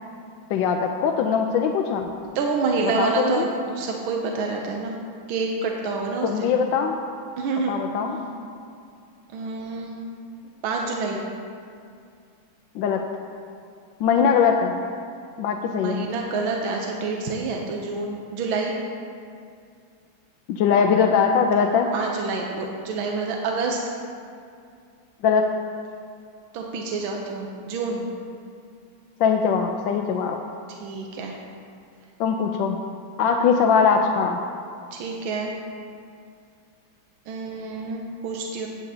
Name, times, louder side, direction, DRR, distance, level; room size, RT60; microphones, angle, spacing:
voice 1, 0.5-2.1 2.8-3.4 6.2-7.0 7.7-8.2 12.7-13.1 14.0-14.8 15.4-16.1 20.5-21.9 25.2-25.5 29.2-30.4 32.2-32.8 33.2-34.4, left 6 dB, 75° left, 3 dB, 1.2 m, -21 dB
voice 2, 2.3-5.0 5.3-6.5 7.4-8.5 9.3-10.0 10.6-11.2 15.7-18.7 21.9-23.8 26.5-28.1 30.8-31.4 34.9-35.5 37.3-38.7, right 4 dB, 80° right, 0 dB, 1.6 m, -28 dB
16.0 x 8.4 x 2.8 m, 2.3 s
omnidirectional pair, 2.2 m